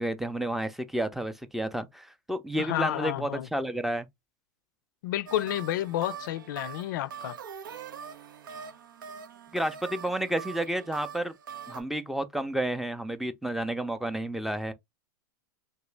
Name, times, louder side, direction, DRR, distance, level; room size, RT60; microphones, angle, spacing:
voice 1, 0.0-4.1 9.5-11.3 11.7-14.7, right 1 dB, ahead, 0.5 m, -31 dB
voice 2, 2.6-3.5 5.0-7.4, left 13 dB, 70° left, 0.4 m, -30 dB
sound 1, 5.3-11.8, right 7 dB, 90° right, 0.8 m, -43 dB
3.0 x 2.8 x 3.3 m
hypercardioid pair, 115°, 11 cm